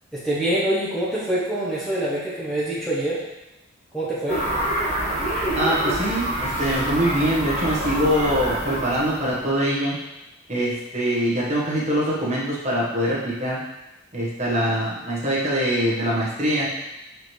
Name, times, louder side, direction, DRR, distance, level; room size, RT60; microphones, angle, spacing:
voice 1, 0.1-3.2 3.9-4.4, right 1 dB, ahead, -8 dB, 1.0 m, -25 dB
sound 1, 4.3-9.4, right 1 dB, 35° left, 1.6 m, -26 dB
voice 2, 5.5-10.0 10.5-13.6 14.1-16.7, equal, 35° right, -6 dB, 1.4 m, -23 dB
6.2 x 4.9 x 3.2 m, 0.96 s
head